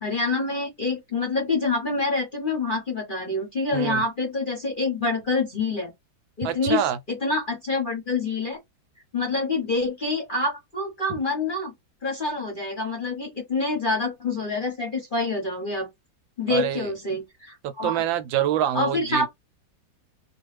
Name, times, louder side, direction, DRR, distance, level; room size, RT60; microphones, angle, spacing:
voice 1, 0.0-5.9 6.4-8.6 9.1-11.7 12.0-15.9 16.4-18.0 18.7-19.3, left 3 dB, 40° left, 0.8 m, -26 dB
voice 2, 3.7-4.0 6.4-7.0 16.5-16.9 17.6-19.3, right 10 dB, 80° right, 1.3 m, -26 dB
3.0 x 2.4 x 3.2 m
omnidirectional pair, 2.1 m